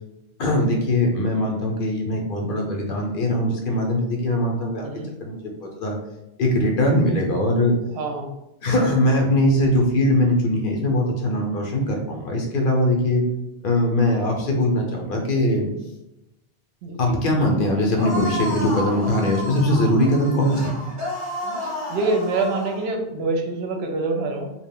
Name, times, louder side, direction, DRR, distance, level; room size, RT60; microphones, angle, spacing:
voice 1, 0.4-4.9 5.2-5.4 5.8-6.0 6.4-7.8 8.6-13.3 13.6-15.7 17.0-20.8, left 1 dB, 60° left, 1 dB, 0.7 m, -21 dB
voice 2, 7.9-8.3 16.8-17.0 21.6-24.5, right 3 dB, 75° right, 3 dB, 0.8 m, -25 dB
sound 1, 18.0-22.9, left 1 dB, 20° right, 0.6 m, -31 dB
2.3 x 2.1 x 3.4 m, 0.92 s
omnidirectional pair, 1.1 m